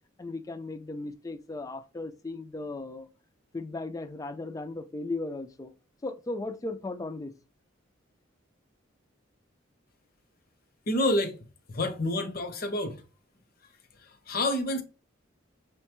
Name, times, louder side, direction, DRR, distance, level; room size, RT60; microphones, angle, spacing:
voice 1, 0.2-3.1 3.5-5.7 6.0-7.3, left 2 dB, 15° left, 0.3 m, -36 dB
voice 2, 10.9-11.4 11.7-13.0 14.3-14.8, left 1 dB, 50° left, 0.7 m, -28 dB
6.2 x 2.2 x 2.9 m
head